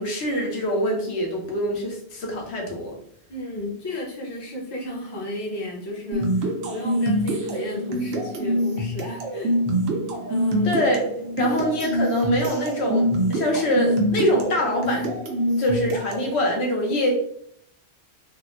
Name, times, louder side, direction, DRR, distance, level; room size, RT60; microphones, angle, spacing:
voice 1, 0.0-3.0 10.6-11.0 11.4-15.1 15.6-17.1, equal, 75° left, 0 dB, 1.0 m, -24 dB
voice 2, 3.3-9.6 10.3-10.7 11.4-11.6, left 1 dB, 30° left, -3 dB, 0.6 m, -34 dB
sound 1, 6.1-16.4, equal, 75° right, 0.8 m, -25 dB
3.4 x 2.0 x 2.5 m, 0.66 s
omnidirectional pair, 1.1 m